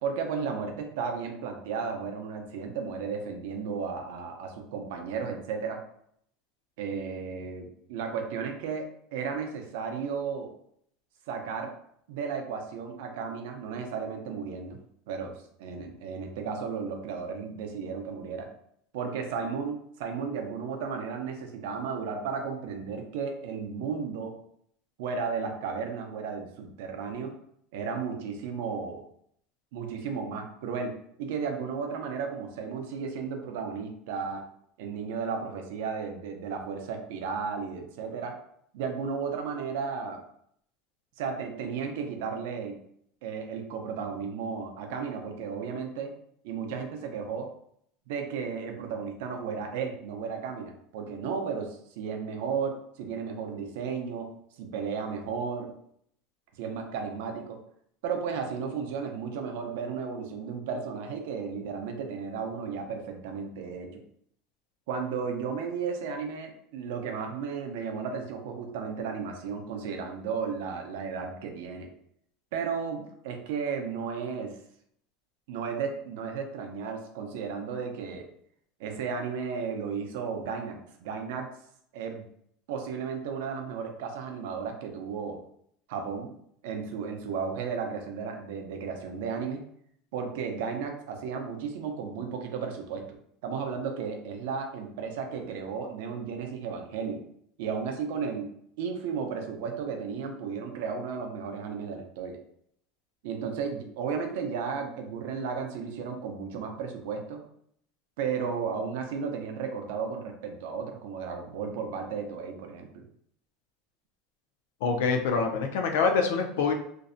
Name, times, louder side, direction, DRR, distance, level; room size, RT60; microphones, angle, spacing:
voice 1, 0.0-5.8 6.8-10.5 11.3-11.7 12.1-14.8 15.1-18.5 18.9-24.4 25.0-27.3 27.7-29.0 29.7-34.4 34.8-38.4 38.7-40.2 41.2-42.8 43.2-46.1 46.4-47.5 48.1-54.3 54.6-55.7 56.6-57.6 58.0-64.0 64.9-71.9 72.5-74.6 75.5-78.3 78.8-81.5 81.9-82.2 82.7-85.4 85.9-86.3 86.6-89.6 90.1-97.2 97.6-98.5 98.8-102.4 103.2-107.4 108.2-113.0, right 6 dB, 70° right, 4 dB, 0.4 m, -34 dB
voice 2, 114.8-116.7, left 5 dB, 80° left, 4 dB, 0.4 m, -25 dB
2.5 x 2.0 x 2.5 m, 0.68 s
cardioid pair, 175°, 0 cm